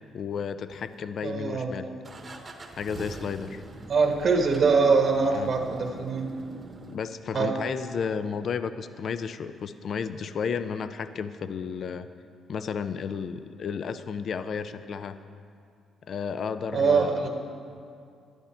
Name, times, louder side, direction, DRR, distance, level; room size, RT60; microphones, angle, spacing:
voice 1, 0.1-1.9 2.7-3.6 5.3-5.5 6.9-12.1 12.5-15.2 16.1-17.3, left 6 dB, 55° left, 12 dB, 0.4 m, -32 dB
sound 1, 0.7-1.4 2.0-7.0, right 2 dB, 30° right, 1.0 m, -44 dB
voice 2, 1.2-1.7 3.9-6.3 7.3-7.5 16.7-17.3, right 4 dB, 55° right, 2 dB, 1.2 m, -23 dB
11.0 x 11.0 x 4.3 m, 2.3 s
cardioid pair, 90°, 0 cm